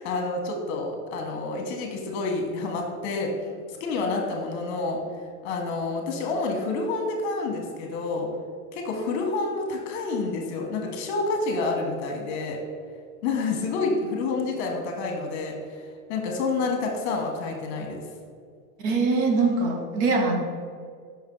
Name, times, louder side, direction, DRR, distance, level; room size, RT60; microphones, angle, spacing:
voice 1, 0.0-3.3 3.7-5.0 5.4-8.3 8.7-12.6 13.2-15.8 16.1-18.0, left 3 dB, 50° left, 1 dB, 1.3 m, -28 dB
voice 2, 18.8-20.4, right 3 dB, 40° right, 3 dB, 0.7 m, -23 dB
5.8 x 5.4 x 3.8 m, 2.1 s
supercardioid pair, 160°, 43 cm